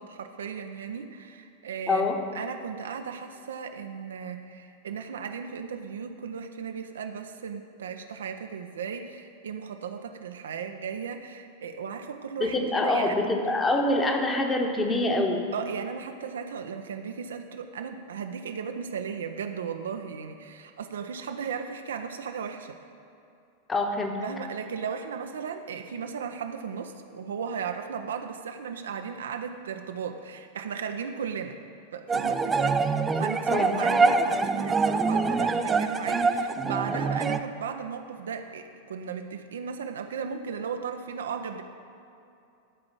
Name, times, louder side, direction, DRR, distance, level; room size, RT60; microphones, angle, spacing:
voice 1, 0.0-2.0 2.3-13.2 15.5-22.8 24.2-31.6 31.9-41.6, right 6 dB, 65° right, 6 dB, 0.6 m, -36 dB
voice 2, 1.9-2.2 12.4-15.4 23.7-24.2 33.5-33.7, left 2 dB, 15° left, 2 dB, 1.3 m, -25 dB
sound 1, 32.1-37.4, right 4 dB, 15° right, 0.4 m, -25 dB
12.5 x 4.9 x 7.5 m, 2.7 s
figure-of-eight pair, 90°, 0 cm